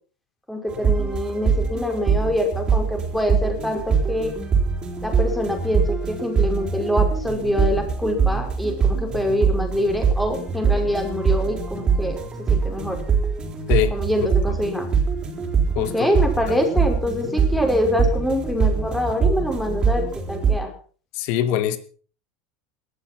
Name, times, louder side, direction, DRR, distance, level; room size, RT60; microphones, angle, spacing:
voice 1, 0.5-4.3 5.0-12.2 12.5-13.0 13.9-14.9 15.8-20.7, left 1 dB, 5° left, 5.3 m, -25 dB
sound 1, 0.7-20.6, right 5 dB, 25° right, 4.7 m, -23 dB
voice 2, 15.8-16.1 16.5-16.6 21.1-21.8, left 11 dB, 60° left, 2.5 m, -23 dB
18.5 x 12.5 x 6.0 m
supercardioid pair, 135°, 3 cm